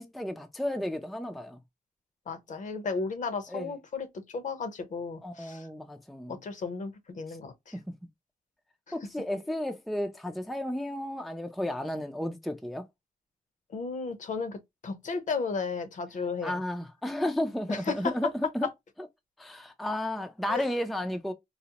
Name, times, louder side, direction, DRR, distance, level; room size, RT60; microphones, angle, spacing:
voice 1, 0.0-1.6 3.5-3.7 5.2-6.4 8.9-12.9 16.4-18.3 18.5-18.7 19.4-21.3, left 1 dB, ahead, 0.4 m, -33 dB
voice 2, 2.3-5.7 6.3-7.8 13.7-16.6 17.7-18.1 20.5-20.6, left 4 dB, 55° left, 0.8 m, -34 dB
4.0 x 2.0 x 2.8 m
cardioid pair, 110°, 16 cm